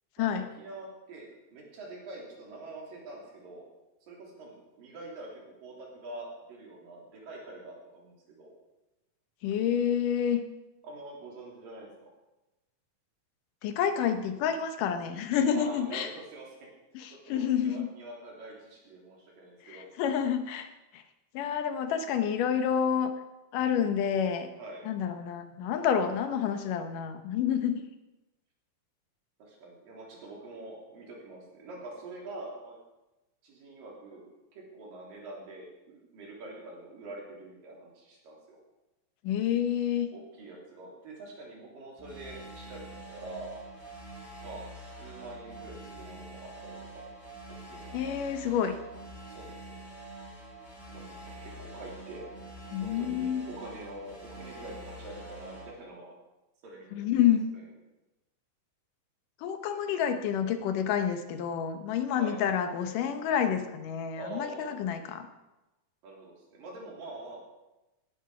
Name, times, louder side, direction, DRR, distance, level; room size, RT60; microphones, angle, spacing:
voice 1, 0.2-3.7 4.0-8.5 10.8-12.1 15.5-16.6 17.1-19.9 24.5-24.8 29.4-32.8 33.4-38.6 40.1-43.5 44.4-47.1 47.7-48.2 49.3-49.8 50.9-52.3 52.8-56.1 56.6-57.1 57.5-57.6 62.2-62.4 64.1-64.8 66.0-67.4, right 2 dB, 85° right, -2 dB, 4.9 m, -45 dB
voice 2, 9.4-10.4 13.6-16.1 16.9-17.9 19.7-20.7 20.9-21.0 21.3-23.1 23.5-24.5 24.9-27.8 39.2-40.1 47.9-48.8 52.7-53.4 56.9-57.5 59.4-65.3, left 8 dB, 75° left, 8 dB, 2.6 m, -28 dB
sound 1, 42.0-55.7, right 1 dB, 5° left, 4.7 m, -46 dB
18.0 x 11.0 x 4.9 m, 1.0 s
omnidirectional pair, 3.8 m